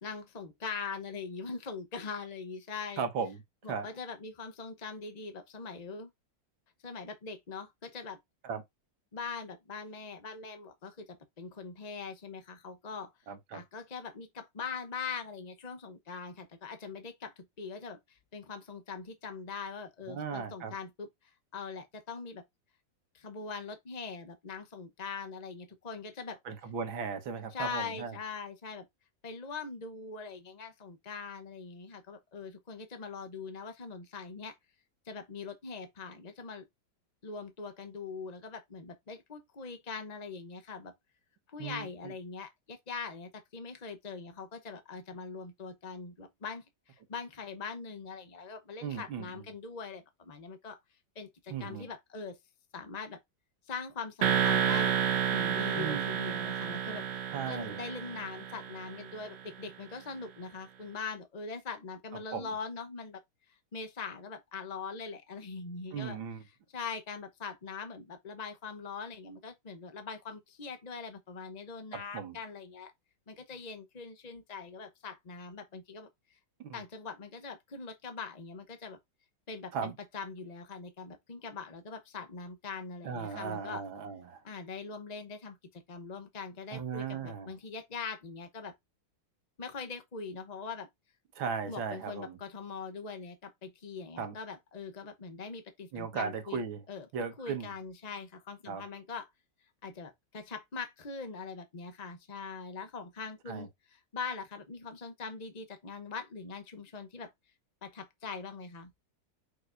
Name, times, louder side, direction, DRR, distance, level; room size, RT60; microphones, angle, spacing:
voice 1, 0.0-3.1 3.6-6.1 6.8-8.2 9.1-13.1 13.5-22.4 23.1-26.4 27.5-28.8 29.2-34.6 35.1-36.7 37.2-40.9 41.5-50.8 51.1-52.4 52.7-53.2 53.7-54.9 55.3-63.2 63.5-66.2 66.7-72.9 73.3-76.4 76.7-79.0 79.5-83.8 84.4-88.7 89.6-90.9 91.6-96.6 96.9-99.3 99.8-107.3 107.8-108.9, left 5 dB, 45° left, 0.5 m, -42 dB
voice 2, 3.0-3.4 3.7-3.9 8.4-8.6 13.3-13.6 20.1-20.7 26.5-28.2 41.6-42.1 48.8-49.3 51.5-51.9 55.8-56.1 57.3-57.8 62.3-62.5 65.9-66.4 72.1-72.4 76.6-76.8 79.7-80.0 83.0-84.4 86.7-87.5 91.3-92.4 94.2-94.4 95.9-96.8 97.1-97.7 98.7-98.8 103.5-103.7, right 6 dB, 80° right, 2.1 m, -37 dB
sound 1, 54.2-59.1, right 8 dB, 65° right, 1.4 m, -30 dB
6.5 x 5.8 x 2.6 m
omnidirectional pair, 2.1 m